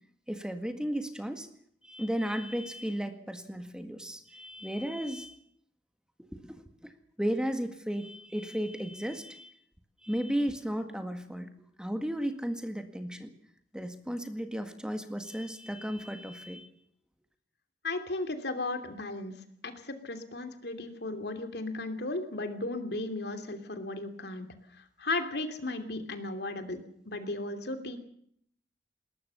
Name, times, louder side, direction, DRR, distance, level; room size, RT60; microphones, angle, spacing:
voice 1, 0.3-1.5 1.8-5.3 6.3-6.9 7.2-9.5 10.0-11.5 11.8-13.3 13.7-16.7, equal, 5° right, 7 dB, 1.9 m, -34 dB
voice 2, 17.8-19.3 19.6-24.5 24.8-26.8 27.0-28.0, left 2 dB, 65° left, 8 dB, 2.9 m, -35 dB
21.0 x 19.5 x 7.0 m, 0.67 s
head